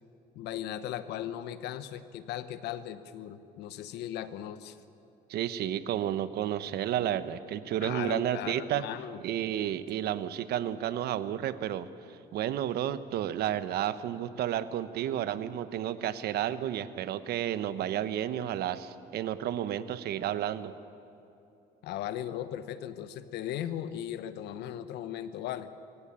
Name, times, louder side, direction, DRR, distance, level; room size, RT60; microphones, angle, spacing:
voice 1, 0.3-4.8 7.8-9.2 21.8-25.7, left 11 dB, 85° left, 12 dB, 1.1 m, -37 dB
voice 2, 5.3-8.8 9.2-20.7, right 11 dB, 70° right, 13 dB, 1.0 m, -31 dB
23.5 x 15.5 x 8.8 m, 2.8 s
cardioid pair, 110°, 17 cm